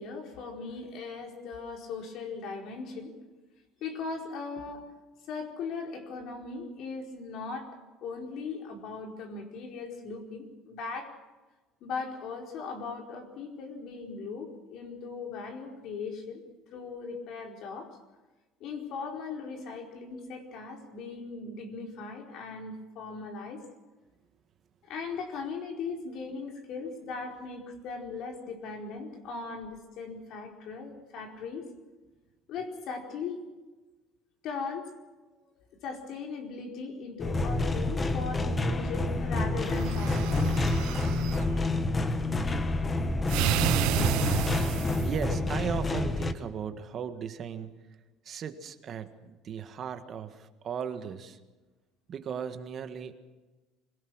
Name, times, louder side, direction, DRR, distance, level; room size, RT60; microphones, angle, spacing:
voice 1, 0.0-3.1 3.8-4.8 5.3-11.1 11.8-16.4 16.7-17.9 18.6-23.6 24.8-31.7 32.5-33.4 34.4-34.9 35.4-40.5, left 4 dB, 60° left, 2 dB, 4.6 m, -39 dB
sound 1, 37.2-46.3, left 2 dB, 20° left, 1.3 m, -28 dB
sound 2, 39.7-41.4 43.3-45.2, right 16 dB, 75° right, 0.7 m, -30 dB
voice 2, 45.0-47.7 48.2-51.4 52.1-53.1, right 7 dB, 40° right, 8 dB, 1.7 m, -36 dB
25.5 x 18.0 x 6.3 m, 1.2 s
cardioid pair, 120°, 0 cm